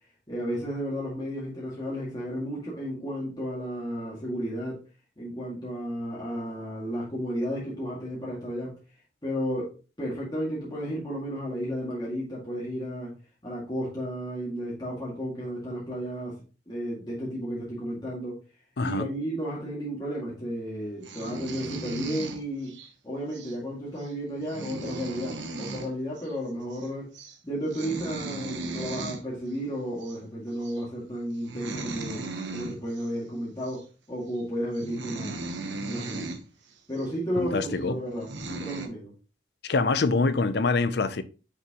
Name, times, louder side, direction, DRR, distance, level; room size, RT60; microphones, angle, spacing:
voice 1, 0.3-4.8 5.2-8.7 9.2-13.1 13.4-16.4 16.7-18.4 18.8-22.8 23.0-27.1 27.4-35.5 35.9-36.3 36.9-39.1, equal, 25° left, 2.1 m, -33 dB
voice 2, 18.8-19.1 37.4-38.0 39.6-41.2, left 3 dB, 60° left, 0.5 m, -25 dB
sound 1, 21.0-22.9 23.3-23.5 24.0-24.1 24.3-25.9 26.2-26.3 26.6-26.9 27.1-27.4 27.7-29.2 30.0-30.2 30.6-30.8 31.3-33.1 33.6-33.8 34.4-34.5 34.7-36.4 36.9-37.1 37.8-37.9 38.2-38.9, right 2 dB, 85° right, 1.1 m, -37 dB
6.1 x 6.0 x 2.9 m
head